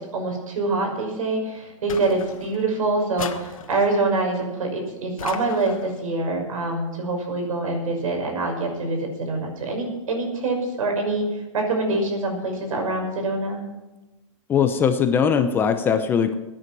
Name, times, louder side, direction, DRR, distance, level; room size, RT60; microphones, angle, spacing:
voice 1, 0.1-13.6, right 2 dB, 80° right, 3 dB, 5.8 m, -25 dB
sound 1, 1.9-2.7 3.2-4.1 5.2-6.0, left 8 dB, 90° left, 1.4 m, -36 dB
voice 2, 14.5-16.3, left 7 dB, 10° left, 8 dB, 0.6 m, -20 dB
16.0 x 9.8 x 6.1 m, 1.0 s
hypercardioid pair, 165°, 17 cm